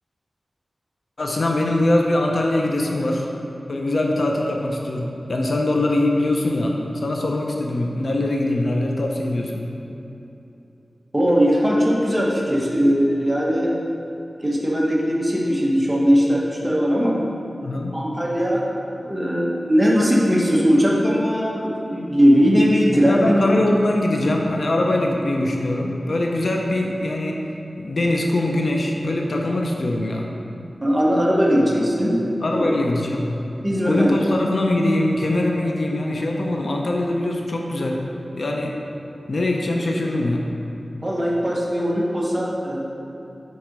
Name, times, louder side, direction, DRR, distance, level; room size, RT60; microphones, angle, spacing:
voice 1, 1.2-3.3 3.7-9.7 17.6-18.0 23.1-27.4 27.8-30.3 32.4-33.3 33.8-38.0 38.4-38.8 39.3-40.5, left 1 dB, 65° left, 0 dB, 0.7 m, -22 dB
voice 2, 11.1-13.7 14.4-17.1 17.9-18.6 19.0-23.5 30.8-32.2 32.5-32.8 33.6-34.2 41.0-42.8, equal, 15° right, -5 dB, 1.4 m, -19 dB
7.9 x 4.2 x 5.3 m, 2.9 s
wide cardioid pair, 75°, 0 cm